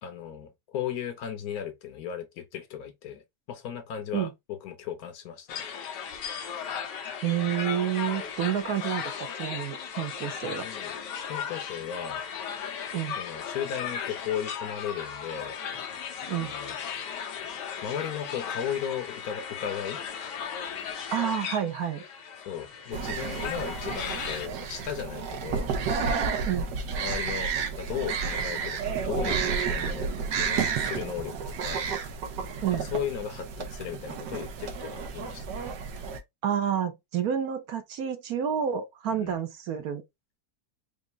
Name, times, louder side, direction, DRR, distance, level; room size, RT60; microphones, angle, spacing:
voice 1, 0.0-3.2 3.5-5.6 10.4-11.0 11.2-12.2 13.2-15.6 16.3-16.7 17.8-20.0 22.5-25.7 26.0-26.3 27.0-31.9 32.7-35.8 39.1-39.3, left 9 dB, 65° left, 1.1 m, -36 dB
sound 1, 5.5-24.5, left 7 dB, 85° left, 1.4 m, -36 dB
voice 2, 7.2-10.7 12.9-13.2 16.3-16.5 21.1-22.0 26.5-26.7 32.6-32.9 36.4-40.0, right 9 dB, 65° right, 1.2 m, -29 dB
sound 2, 22.9-36.2, right 5 dB, 85° right, 1.5 m, -31 dB
5.1 x 2.5 x 3.3 m
omnidirectional pair, 1.8 m